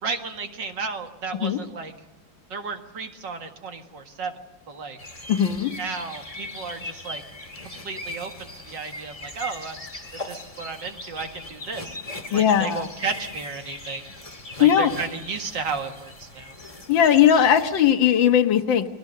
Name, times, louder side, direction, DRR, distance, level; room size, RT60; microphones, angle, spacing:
voice 1, 0.0-1.9 2.5-4.3 4.7-5.0 5.8-7.2 7.6-9.8 10.1-12.0 12.3-14.1 14.6-16.6, right 5 dB, 70° right, 5 dB, 2.4 m, -33 dB
sound 1, 5.0-17.9, left 1 dB, 20° left, 2.1 m, -39 dB
voice 2, 5.3-5.7 12.3-12.9 14.6-14.9 16.9-18.9, left 9 dB, 80° left, 8 dB, 2.0 m, -18 dB
29.5 x 20.5 x 6.7 m, 0.97 s
omnidirectional pair, 2.1 m